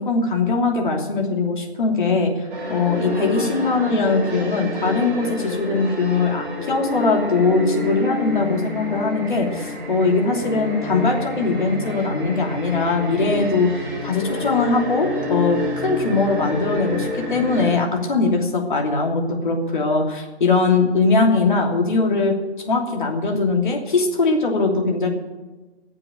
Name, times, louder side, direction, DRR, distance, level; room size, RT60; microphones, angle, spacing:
voice 1, 0.0-2.3 2.7-22.3 22.7-25.1, left 3 dB, 45° left, 1 dB, 3.0 m, -21 dB
sound 1, 2.5-17.7, left 2 dB, 15° right, 5.9 m, -29 dB
15.0 x 7.7 x 9.2 m, 1.2 s
figure-of-eight pair, 145°, 33 cm